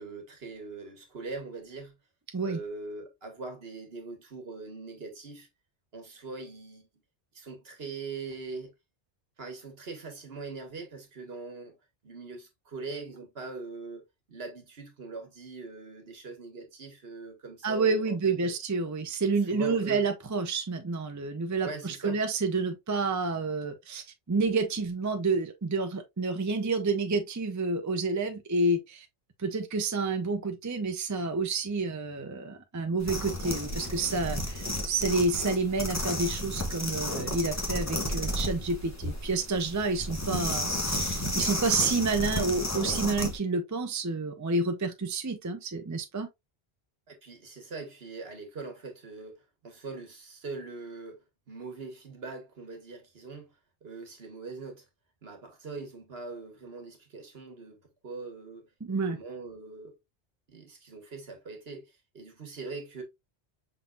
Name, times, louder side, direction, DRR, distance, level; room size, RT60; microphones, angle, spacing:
voice 1, 0.0-1.9 2.4-5.5 5.9-6.9 7.3-8.7 9.4-11.8 12.0-14.0 14.3-18.5 19.5-20.1 21.6-22.2 47.1-53.5 53.8-54.8 55.2-57.8 58.0-59.9 60.5-63.0, right 4 dB, 65° right, 1.6 m, -42 dB
voice 2, 17.6-29.1 29.4-46.3 58.8-59.2, right 3 dB, 20° right, 0.6 m, -29 dB
sound 1, 33.0-43.4, left 1 dB, 15° left, 0.9 m, -32 dB
5.6 x 3.9 x 2.3 m
omnidirectional pair, 1.1 m